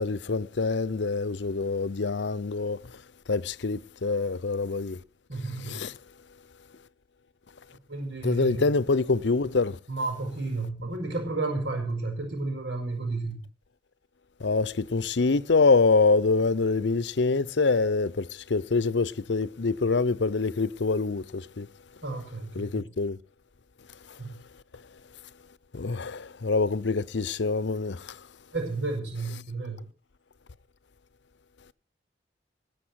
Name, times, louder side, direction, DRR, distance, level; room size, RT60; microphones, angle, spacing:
voice 1, 0.0-2.8 3.3-5.0 5.6-5.9 8.2-9.8 14.4-21.7 22.5-23.2 25.7-28.1, left 3 dB, 75° left, 0.7 m, -25 dB
voice 2, 5.3-5.9 7.9-8.7 9.9-13.4 22.0-22.8 24.2-24.3 28.5-29.9, right 3 dB, 90° right, 5.6 m, -32 dB
19.5 x 6.7 x 8.0 m
head